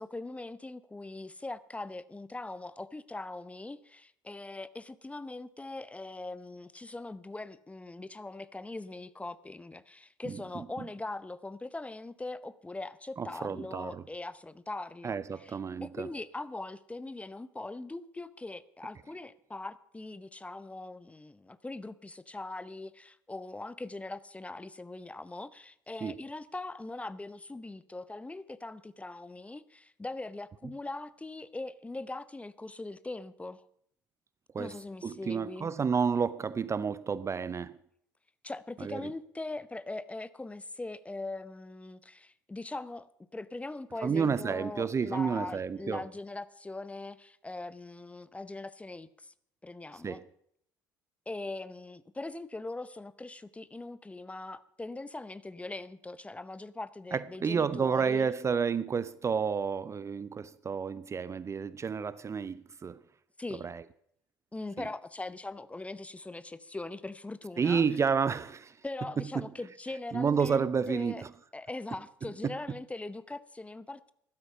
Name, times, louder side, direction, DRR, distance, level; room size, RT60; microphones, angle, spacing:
voice 1, 0.0-33.7 34.6-35.7 38.4-49.3 49.6-50.2 51.3-58.3 63.4-63.7 64.5-67.8 68.8-71.2 71.5-74.1, left 2 dB, 10° left, 0.7 m, -41 dB
voice 2, 10.3-10.8 13.2-14.0 15.0-16.1 26.0-26.2 34.5-34.8 35.0-37.8 38.8-39.0 44.0-46.0 50.0-50.2 57.1-63.0 63.6-63.8 67.6-68.8 69.4-69.5 70.1-71.3 72.4-72.5, right 6 dB, 25° right, 0.6 m, -30 dB
15.0 x 12.5 x 5.5 m
figure-of-eight pair, 60°, 11 cm